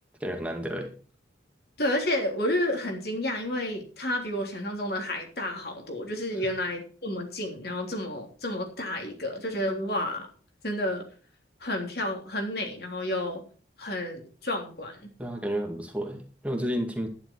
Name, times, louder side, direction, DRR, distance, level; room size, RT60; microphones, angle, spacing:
voice 1, 0.2-0.9 15.2-17.1, equal, 5° right, 2 dB, 2.3 m, -31 dB
voice 2, 1.8-10.3 10.6-11.0 11.6-13.4 13.8-15.1, left 1 dB, 55° left, 3 dB, 3.3 m, -30 dB
11.5 x 11.0 x 4.6 m, 0.38 s
head